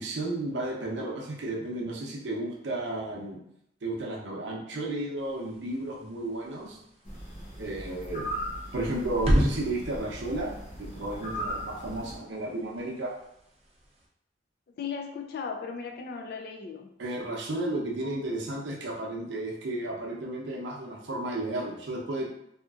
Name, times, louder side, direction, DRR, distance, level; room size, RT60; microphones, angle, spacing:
voice 1, 0.0-3.4 3.8-6.8 7.6-8.3 8.7-13.1 17.0-22.3, right 1 dB, 75° right, -2 dB, 0.6 m, -33 dB
sound 1, 5.2-14.1, equal, 35° right, 0.5 m, -34 dB
sound 2, 7.0-12.2, equal, 40° left, 0.7 m, -38 dB
voice 2, 14.8-16.9, left 5 dB, 55° left, 4 dB, 0.3 m, -36 dB
2.8 x 2.4 x 2.4 m, 0.76 s
head